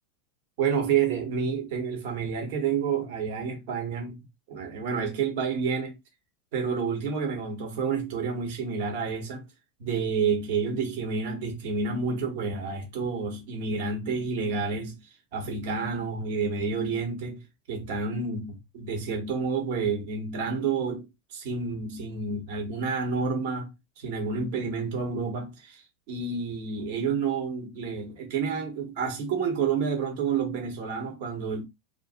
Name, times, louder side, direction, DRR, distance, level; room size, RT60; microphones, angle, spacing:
voice 1, 0.6-4.2 4.5-6.0 6.5-9.4 9.8-15.0 15.3-25.8 26.1-31.6, right 5 dB, 65° right, 1.0 m, -29 dB
2.5 x 2.1 x 3.6 m
hypercardioid pair, 110°, 0 cm